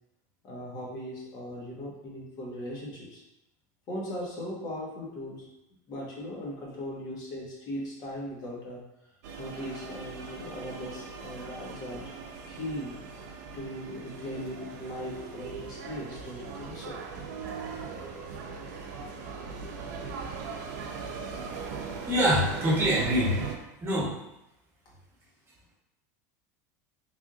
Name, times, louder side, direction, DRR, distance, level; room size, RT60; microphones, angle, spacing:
voice 1, 0.4-3.2 3.9-5.5 5.9-8.8 9.4-12.1 12.5-13.0 13.5-17.0, equal, 45° left, -4 dB, 1.2 m, -38 dB
sound 1, 9.2-23.6, right 5 dB, 75° right, 0.6 m, -39 dB
voice 2, 22.1-23.4 23.8-24.1, equal, 25° right, -5 dB, 1.4 m, -24 dB
3.4 x 2.6 x 3.7 m, 0.88 s
supercardioid pair, 120°, 9 cm